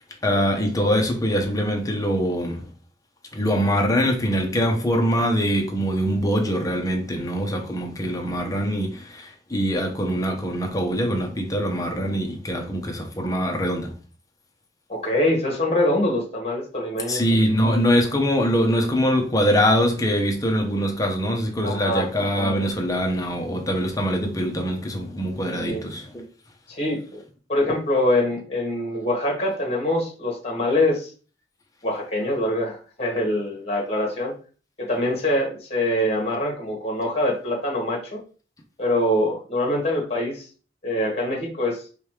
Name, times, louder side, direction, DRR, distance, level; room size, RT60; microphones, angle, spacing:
voice 1, 0.2-2.7 3.3-13.9 17.1-26.2, equal, 20° left, 0.8 m, -23 dB
voice 2, 14.9-17.2 21.6-22.1 25.6-25.8 26.7-27.2 27.5-31.1 31.8-34.3 34.8-38.2 38.8-40.5 40.8-41.8, left 1 dB, 35° left, 1.5 m, -24 dB
5.1 x 2.4 x 3.1 m
head